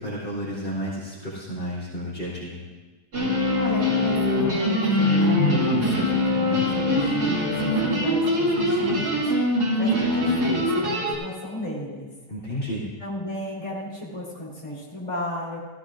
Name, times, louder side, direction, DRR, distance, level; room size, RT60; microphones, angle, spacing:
voice 1, 0.0-2.6 12.3-12.8, equal, 40° left, -6 dB, 3.4 m, -32 dB
sound 1, 3.1-11.1, left 1 dB, 70° right, 3.2 m, -22 dB
voice 2, 3.5-9.3 9.7-12.1 13.0-15.6, left 1 dB, 20° left, -6 dB, 3.4 m, -34 dB
16.0 x 16.0 x 2.5 m, 1.3 s
omnidirectional pair, 1.8 m